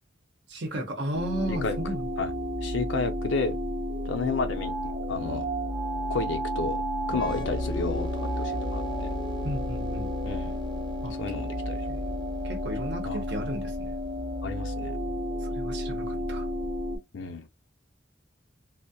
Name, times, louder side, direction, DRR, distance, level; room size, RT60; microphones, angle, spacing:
voice 1, 0.5-2.1 9.4-10.1 11.0-11.1 11.9-12.0 12.4-13.9 15.4-16.5, right 1 dB, 60° right, 0.8 m, -34 dB
sound 1, 1.1-17.0, equal, 15° right, 0.7 m, -32 dB
voice 2, 2.6-3.6 4.0-4.7 5.1-5.5 6.1-6.8 7.1-8.1 8.4-9.1 10.2-10.6 11.2-11.8 13.1-13.2 14.4-15.0 16.1-16.2 17.1-17.5, left 4 dB, 70° left, 0.6 m, -31 dB
sound 2, 7.1-14.6, left 1 dB, 25° left, 0.3 m, -37 dB
2.3 x 2.1 x 2.6 m
head